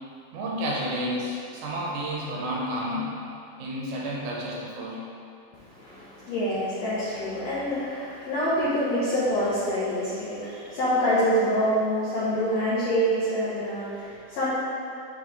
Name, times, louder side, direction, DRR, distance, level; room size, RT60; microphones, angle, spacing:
voice 1, 0.3-3.1 3.6-5.0, equal, 90° right, -4 dB, 2.8 m, -30 dB
voice 2, 5.5-14.5, equal, 80° left, -9 dB, 1.5 m, -26 dB
7.1 x 3.9 x 3.6 m, 2.6 s
omnidirectional pair, 4.3 m